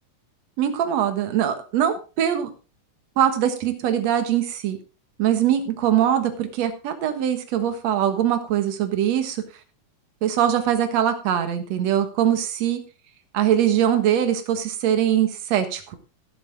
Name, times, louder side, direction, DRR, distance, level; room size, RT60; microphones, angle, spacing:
voice 1, 0.6-2.5 3.2-4.8 5.2-9.4 10.2-12.8 13.3-16.0, right 10 dB, 65° right, 8 dB, 2.5 m, -22 dB
17.0 x 7.7 x 3.5 m, 0.33 s
omnidirectional pair, 3.6 m